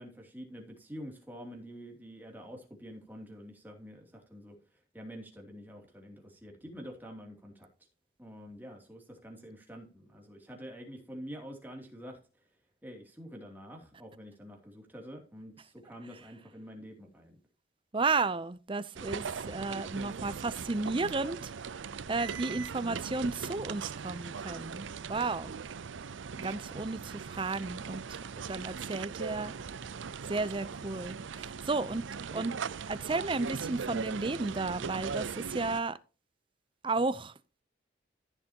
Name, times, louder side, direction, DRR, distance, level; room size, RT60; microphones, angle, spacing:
voice 1, 0.0-4.5 4.9-7.7 8.2-12.2 12.8-17.4, equal, 10° right, 2.7 m, -47 dB
voice 2, 17.9-21.5 22.1-25.5 26.4-28.2 28.5-29.5 30.3-32.0 32.3-32.5 32.9-36.0 36.8-37.3, right 3 dB, 25° right, 0.5 m, -33 dB
sound 1, 19.0-35.8, right 6 dB, 80° right, 0.5 m, -40 dB
14.5 x 6.8 x 2.9 m
head